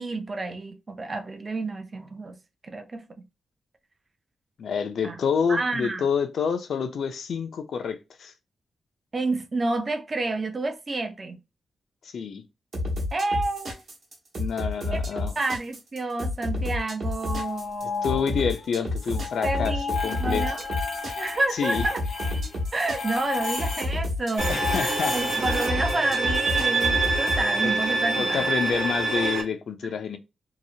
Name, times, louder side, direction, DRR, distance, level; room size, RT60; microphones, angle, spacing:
voice 1, 0.0-2.3 2.6-3.0 5.0-5.2 5.5-6.1 9.1-11.4 13.1-13.7 14.9-15.0 15.4-18.4 19.4-20.6 21.2-22.0 22.7-28.5 29.8-29.9, right 2 dB, 35° right, 0.4 m, -29 dB
voice 2, 4.6-8.3 12.0-12.4 14.4-15.4 17.8-20.5 21.5-21.9 24.5-25.2 27.6-27.7 28.2-30.2, left 6 dB, 75° left, 0.4 m, -28 dB
sound 1, 12.7-27.4, left 2 dB, 65° right, 1.0 m, -30 dB
sound 2, 17.1-18.7 18.9-24.0 24.3-25.7, left 4 dB, 90° left, 0.9 m, -32 dB
Bowed string instrument, 24.4-29.4, right 3 dB, 90° right, 1.0 m, -26 dB
2.8 x 2.0 x 2.7 m
wide cardioid pair, 115°, 0 cm